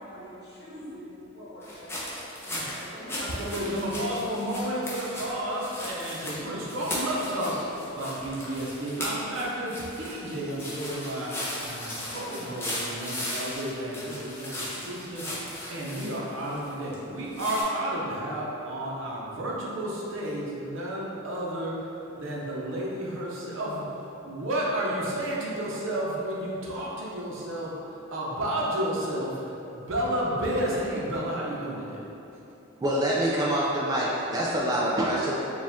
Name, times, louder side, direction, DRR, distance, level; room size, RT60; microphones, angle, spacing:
voice 1, 0.0-3.8 11.3-11.5 32.4-32.8, equal, 55° left, -9 dB, 1.2 m, -44 dB
sound 1, 1.6-16.9 17.3-17.6, left 1 dB, 10° left, 0.7 m, -37 dB
voice 2, 3.2-32.0, right 1 dB, 65° right, -4 dB, 0.7 m, -32 dB
voice 3, 32.8-35.4, right 1 dB, 20° right, -6 dB, 0.4 m, -25 dB
4.6 x 2.4 x 3.5 m, 2.9 s
head